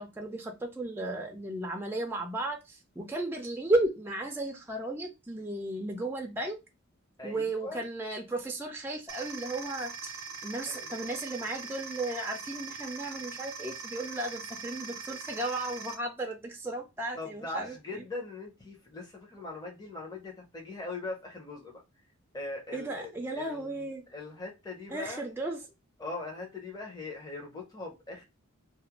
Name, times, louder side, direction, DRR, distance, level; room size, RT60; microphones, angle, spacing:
voice 1, 0.0-6.6 7.2-18.0 22.7-24.0 24.9-25.6, right 2 dB, 10° right, 0.4 m, -34 dB
voice 2, 7.2-7.8 10.6-11.2 17.1-21.8 22.3-25.3 26.0-28.2, left 2 dB, 20° left, 0.7 m, -41 dB
sound 1, 9.1-15.9, right 5 dB, 75° right, 0.5 m, -42 dB
2.4 x 2.1 x 2.9 m
head